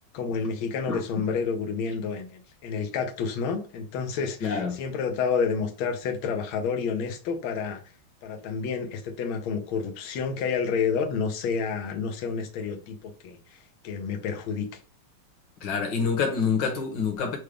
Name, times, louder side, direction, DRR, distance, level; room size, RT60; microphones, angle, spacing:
voice 1, 0.1-7.8 8.2-13.4 13.8-14.7, left 5 dB, 85° left, 1.6 m, -29 dB
voice 2, 4.4-4.8 15.6-17.4, left 5 dB, 65° left, 1.7 m, -26 dB
6.2 x 2.2 x 3.4 m
omnidirectional pair, 2.2 m